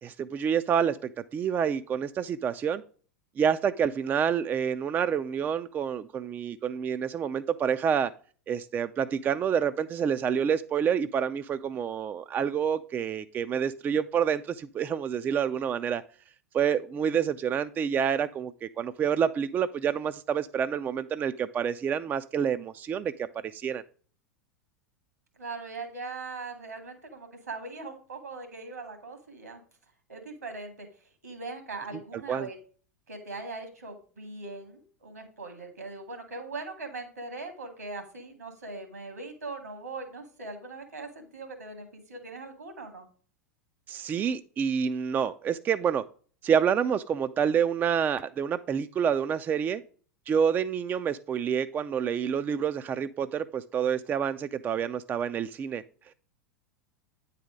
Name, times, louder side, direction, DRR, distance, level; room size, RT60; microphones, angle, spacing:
voice 1, 0.0-2.8 3.4-8.1 8.5-16.0 16.5-23.8 32.3-32.5 43.9-46.0 46.4-49.8 50.3-55.8, right 7 dB, 20° right, 0.3 m, -28 dB
voice 2, 25.4-29.6 30.1-30.9 31.2-32.6 33.1-43.1, right 3 dB, 80° right, 2.2 m, -40 dB
9.3 x 4.1 x 5.0 m
figure-of-eight pair, 85°, 9 cm